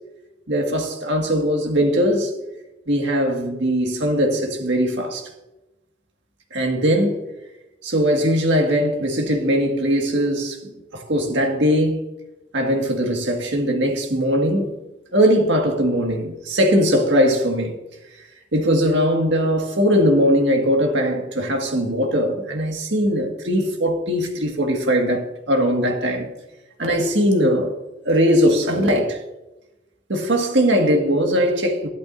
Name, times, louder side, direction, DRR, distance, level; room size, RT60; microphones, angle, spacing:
voice 1, 0.5-2.3 2.9-5.3 6.5-7.2 7.8-12.0 12.5-14.7 15.1-17.8 18.5-26.3 26.8-27.8 28.1-29.2 30.1-31.9, equal, 70° right, 1.9 m, -20 dB
12.5 x 11.5 x 2.7 m
head